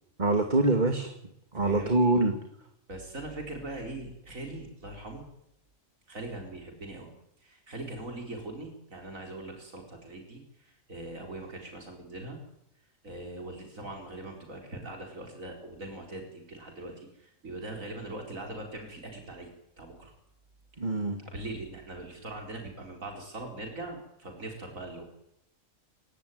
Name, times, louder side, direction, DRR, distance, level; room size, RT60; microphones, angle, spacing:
voice 1, 0.2-1.1 1.5-2.3 20.8-21.2, right 2 dB, 35° right, 6 dB, 2.4 m, -24 dB
voice 2, 1.6-2.2 2.9-5.2 6.1-7.1 7.4-12.4 13.0-19.5 19.8-20.1 21.2-25.0, right 2 dB, 80° right, 2 dB, 5.0 m, -41 dB
29.0 x 17.0 x 9.5 m, 0.78 s
omnidirectional pair, 1.4 m